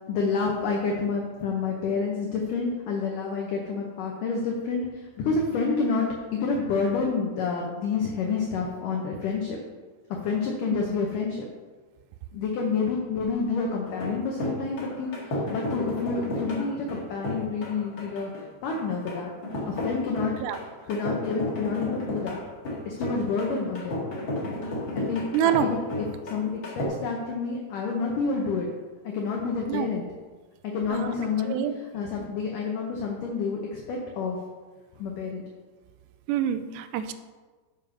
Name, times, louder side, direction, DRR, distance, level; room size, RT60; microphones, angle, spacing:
voice 1, 0.1-9.6 10.2-11.5 12.3-18.3 18.6-19.3 19.7-20.3 20.9-22.4 22.9-24.1 25.0-25.8 26.2-28.7 29.0-30.1 30.6-34.4 35.0-35.4, left 4 dB, 75° left, 0 dB, 1.9 m, -29 dB
sound 1, 13.8-26.8, left 1 dB, 40° left, 2.0 m, -33 dB
voice 2, 25.3-25.7 29.7-29.9 30.9-31.1 31.5-31.7 36.3-37.1, right 9 dB, 80° right, 11 dB, 2.6 m, -26 dB
7.2 x 7.0 x 6.5 m, 1.3 s
omnidirectional pair, 5.1 m